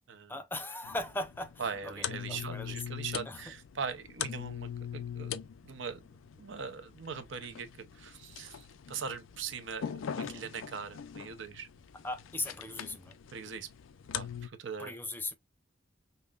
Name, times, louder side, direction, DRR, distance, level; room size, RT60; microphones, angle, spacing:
voice 1, 0.3-2.8 3.3-3.4 10.1-10.5 12.0-13.2 14.8-15.3, left 2 dB, 10° left, 0.4 m, -39 dB
sound 1, 0.8-14.5, left 8 dB, 85° left, 0.4 m, -42 dB
voice 2, 1.6-6.0 6.4-7.7 7.9-11.7 13.3-13.7 14.1-14.9, right 5 dB, 75° right, 0.7 m, -41 dB
5.4 x 2.1 x 2.3 m
head